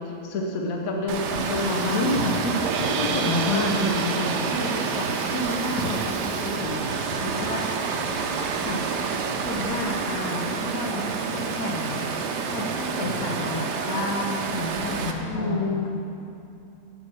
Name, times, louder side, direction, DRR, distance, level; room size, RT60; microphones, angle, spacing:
voice 1, 0.2-2.5 3.0-4.5 5.0-5.1 8.7-8.8 15.2-15.9, left 2 dB, 65° left, 0 dB, 1.3 m, -28 dB
Water, 1.1-15.1, right 5 dB, 85° right, 1.3 m, -28 dB
voice 2, 1.9-2.3 2.8-3.9 4.4-4.9 5.3-7.7 9.4-15.9, left 2 dB, 80° left, 0 dB, 1.6 m, -30 dB
sound 1, 2.6-8.8, right 7 dB, 70° right, 1.0 m, -35 dB
8.7 x 5.3 x 7.7 m, 2.6 s
omnidirectional pair, 1.7 m